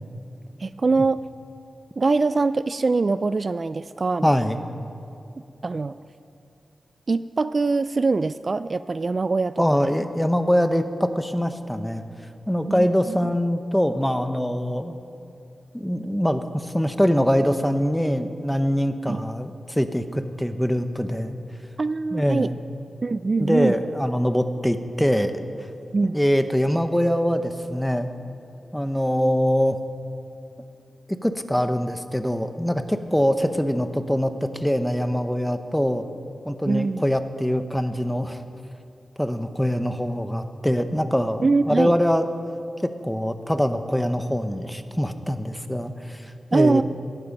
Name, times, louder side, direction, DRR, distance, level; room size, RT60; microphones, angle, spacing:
voice 1, 0.6-1.2 2.0-4.3 5.6-6.0 7.1-9.8 12.7-13.2 19.1-19.2 21.8-22.5 23.0-23.8 25.9-26.2 36.7-37.0 41.4-41.9 46.5-46.8, right 3 dB, 50° right, 14 dB, 0.3 m, -23 dB
voice 2, 4.2-4.6 9.6-12.0 12.5-15.0 15.7-21.4 22.1-22.6 23.4-25.3 26.1-28.1 28.7-29.8 31.2-36.0 36.5-38.4 39.2-42.2 42.8-46.8, equal, 5° left, 9 dB, 0.9 m, -23 dB
17.5 x 11.5 x 5.3 m, 2.6 s
cardioid pair, 65°, 0 cm